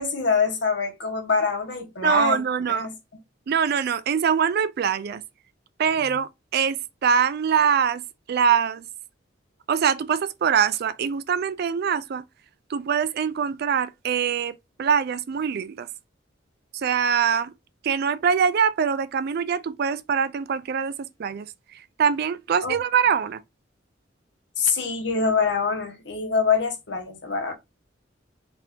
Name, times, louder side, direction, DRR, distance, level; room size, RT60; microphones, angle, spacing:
voice 1, 0.0-2.4 2.7-2.9 22.6-22.8 24.6-27.5, left 5 dB, 65° left, 1.3 m, -24 dB
voice 2, 2.0-2.9 3.5-5.2 5.8-8.0 8.3-8.8 9.7-12.2 12.7-15.9 16.7-17.5 17.8-20.9 21.2-23.4, right 7 dB, 55° right, 0.4 m, -23 dB
4.0 x 2.7 x 3.6 m
head